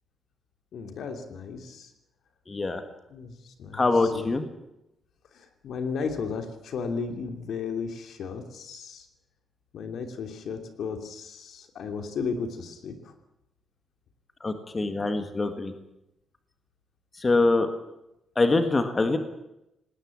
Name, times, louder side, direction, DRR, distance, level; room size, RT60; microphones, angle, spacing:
voice 1, 0.7-1.9 3.1-4.3 5.3-9.0 9.7-13.1, left 5 dB, 70° left, 6 dB, 3.0 m, -34 dB
voice 2, 2.5-2.8 3.7-4.5 14.4-15.7 17.2-17.7 18.4-19.2, left 3 dB, 25° left, 7 dB, 1.8 m, -24 dB
19.5 x 19.0 x 8.7 m, 0.87 s
wide cardioid pair, 155°, 0 cm